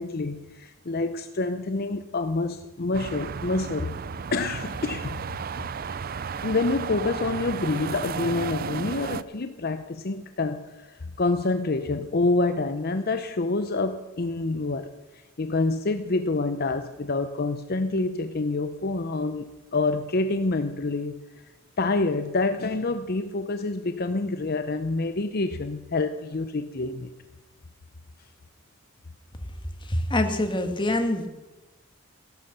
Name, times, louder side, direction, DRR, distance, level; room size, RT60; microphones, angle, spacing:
voice 1, 0.0-4.0 4.3-5.2 6.4-14.9 15.4-21.2 21.8-27.1, left 3 dB, 50° left, 9 dB, 0.7 m, -27 dB
sound 1, 2.9-9.2, right 6 dB, 45° right, 0.4 m, -33 dB
voice 2, 29.8-31.3, left 1 dB, 25° left, 6 dB, 1.6 m, -25 dB
16.5 x 11.5 x 6.8 m, 1.1 s
head